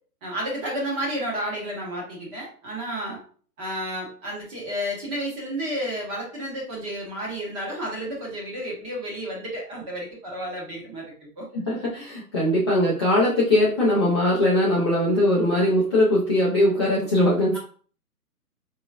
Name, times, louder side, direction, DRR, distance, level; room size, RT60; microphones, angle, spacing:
voice 1, 0.2-3.2 3.6-11.5 17.5-17.6, equal, 20° right, -2 dB, 1.1 m, -31 dB
voice 2, 11.5-17.6, left 1 dB, 20° left, -10 dB, 0.5 m, -21 dB
3.7 x 3.1 x 2.4 m, 0.44 s
hypercardioid pair, 140°, 47 cm